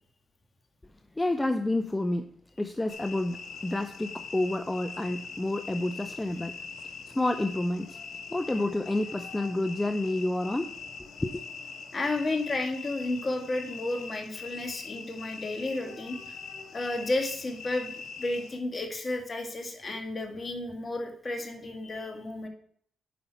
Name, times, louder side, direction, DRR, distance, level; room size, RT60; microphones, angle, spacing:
voice 1, 1.2-2.3 2.6-6.6 7.1-8.0 8.3-10.8 11.2-11.4, left 2 dB, 20° left, 8 dB, 0.6 m, -29 dB
sound 1, 2.9-18.6, left 5 dB, 75° left, 1.1 m, -42 dB
voice 2, 11.9-16.3 16.7-22.5, left 2 dB, 40° left, 4 dB, 1.8 m, -32 dB
9.3 x 5.6 x 4.4 m, 0.62 s
supercardioid pair, 55°, 0 cm